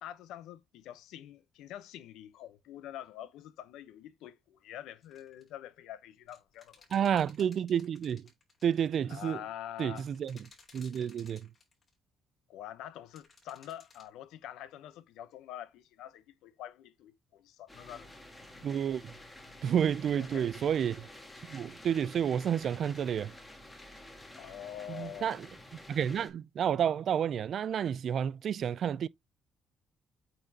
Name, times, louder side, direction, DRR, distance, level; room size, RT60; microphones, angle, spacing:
voice 1, 0.0-6.8 9.1-10.1 12.5-18.1 18.5-18.7 20.2-20.5 24.3-25.4, left 11 dB, 85° left, 0.8 m, -46 dB
sound 1, 5.0-5.5 6.3-8.7 9.9-11.9 13.1-14.1, left 4 dB, 30° left, 4.4 m, -58 dB
voice 2, 6.9-8.3 8.6-9.4 9.8-10.4 10.7-11.5 18.6-19.1 19.6-21.1 21.5-23.3 24.9-25.5 25.9-29.1, right 8 dB, 50° right, 0.4 m, -30 dB
sound 2, 17.7-26.3, left 1 dB, 10° left, 2.0 m, -51 dB
8.8 x 4.1 x 2.8 m
cardioid pair, 135°, 0 cm